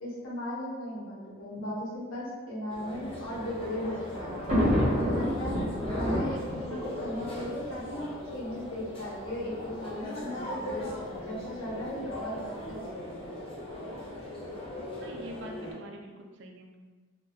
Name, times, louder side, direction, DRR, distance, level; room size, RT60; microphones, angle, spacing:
voice 1, 0.0-4.4 4.9-5.6 6.0-10.9 11.2-13.2, left 1 dB, 85° left, -5 dB, 0.8 m, -37 dB
sound 1, 2.7-15.7, left 1 dB, 30° left, 0.4 m, -40 dB
Thunder, 3.0-8.4 9.2-9.3 9.5-9.6 10.7-11.0, equal, 30° right, 0.8 m, -30 dB
voice 2, 15.0-16.8, right 1 dB, 60° right, 2 dB, 0.3 m, -45 dB
2.6 x 2.1 x 2.4 m, 1.3 s
head